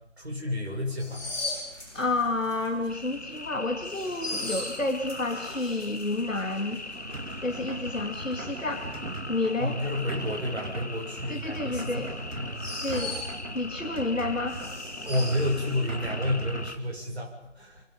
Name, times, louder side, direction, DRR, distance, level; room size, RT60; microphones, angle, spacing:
voice 1, 0.2-1.2 9.6-12.1 12.4-12.7 15.0-17.8, left 1 dB, 55° right, -1 dB, 7.5 m, -30 dB
sound 1, 1.0-13.8 14.1-16.2 16.5-16.7, left 2 dB, 5° right, 5.2 m, -40 dB
voice 2, 1.9-7.1 7.4-8.9 9.3-9.8 11.3-12.1 12.8-13.2 13.5-14.7, left 2 dB, 85° left, 5 dB, 2.8 m, -30 dB
sound 2, 2.9-16.8, left 2 dB, 60° left, 1.9 m, -41 dB
sound 3, 6.9-16.7, right 1 dB, 80° right, 3.7 m, -39 dB
30.0 x 24.5 x 5.5 m, 0.83 s
figure-of-eight pair, 180°, 38 cm